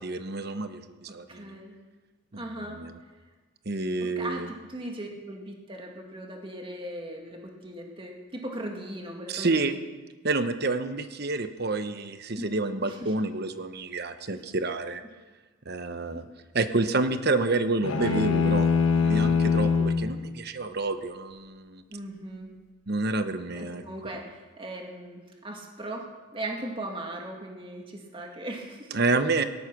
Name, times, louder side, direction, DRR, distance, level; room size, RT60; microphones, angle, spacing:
voice 1, 0.0-1.6 2.3-3.0 3.7-4.5 9.3-9.8 10.2-15.0 15.7-16.3 16.5-18.7 19.0-21.8 22.9-23.8 28.9-29.4, right 3 dB, 50° right, 9 dB, 1.0 m, -29 dB
voice 2, 1.3-1.8 2.3-2.8 4.0-9.8 12.4-12.5 12.8-13.1 18.0-18.3 21.9-22.5 23.5-26.0 26.3-28.9, right 1 dB, 25° right, 1 dB, 2.2 m, -38 dB
sound 1, 17.8-20.1, left 5 dB, 85° left, 1.4 m, -23 dB
18.0 x 13.0 x 6.1 m, 1.3 s
head